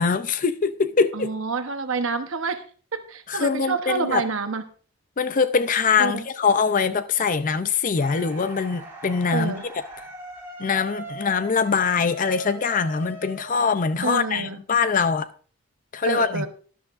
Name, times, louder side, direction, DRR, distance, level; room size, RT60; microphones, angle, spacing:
voice 1, 0.0-1.3 3.3-4.2 5.2-9.6 10.6-15.3 15.9-16.5, left 5 dB, 35° left, 0.5 m, -23 dB
voice 2, 1.1-2.6 2.9-4.6 6.0-6.3 9.3-9.6 14.0-14.6 16.0-16.5, right 4 dB, 60° right, 1.0 m, -27 dB
sound 1, 8.0-14.1, right 1 dB, 10° right, 2.6 m, -40 dB
12.0 x 11.0 x 2.5 m
head